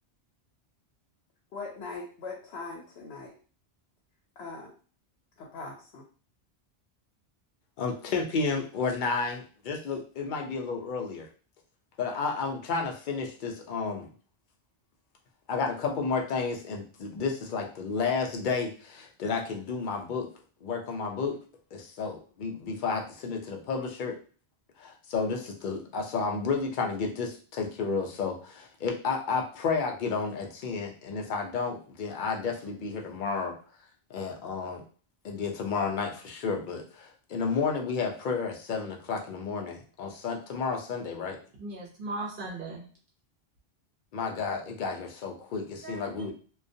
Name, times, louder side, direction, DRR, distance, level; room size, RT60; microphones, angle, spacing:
voice 1, 1.5-3.3 4.4-4.7 5.4-6.0, left 3 dB, 85° left, 0.9 m, -40 dB
voice 2, 7.8-11.3 12.0-14.1 15.5-20.3 20.6-21.4 21.7-24.2 24.8-33.5 34.1-34.8 35.2-41.4 44.1-46.3, left 4 dB, 60° left, 0.6 m, -31 dB
voice 3, 41.6-42.8 45.8-46.3, right 2 dB, 60° right, 0.8 m, -38 dB
2.3 x 2.2 x 2.6 m
omnidirectional pair, 1.1 m